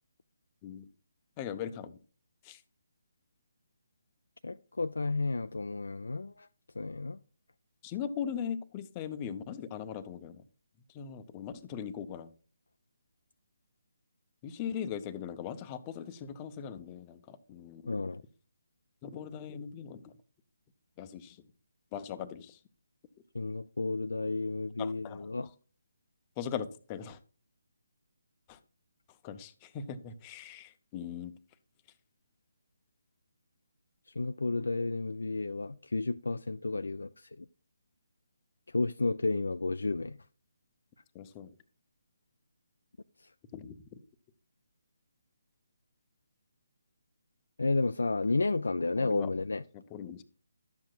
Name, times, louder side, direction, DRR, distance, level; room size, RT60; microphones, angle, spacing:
voice 1, 1.4-2.0 2.4-2.6 7.8-10.4 10.9-12.3 14.4-18.0 19.0-20.1 21.0-21.4 21.9-22.6 24.8-25.2 26.4-27.2 28.5-28.6 29.2-31.3 41.1-41.5 43.5-43.8 49.0-49.3 49.9-50.2, left 8 dB, 20° left, 0.7 m, -40 dB
voice 2, 4.4-6.5 6.8-7.2 17.9-18.2 23.3-25.5 34.2-37.5 38.7-40.2 47.6-49.6, left 3 dB, 70° left, 0.3 m, -32 dB
11.5 x 7.4 x 2.3 m
figure-of-eight pair, 145°, 0 cm